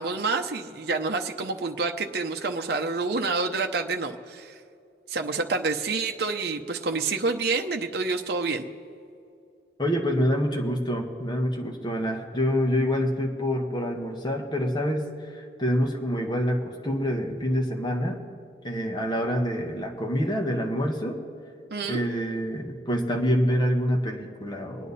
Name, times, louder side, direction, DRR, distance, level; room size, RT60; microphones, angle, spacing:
voice 1, 0.0-4.6 5.1-8.7 21.7-22.1, right 3 dB, 60° right, 4 dB, 0.8 m, -28 dB
voice 2, 9.8-18.2 18.6-21.2 21.8-24.9, equal, 25° left, 1 dB, 1.4 m, -26 dB
24.5 x 9.4 x 4.2 m, 2.5 s
head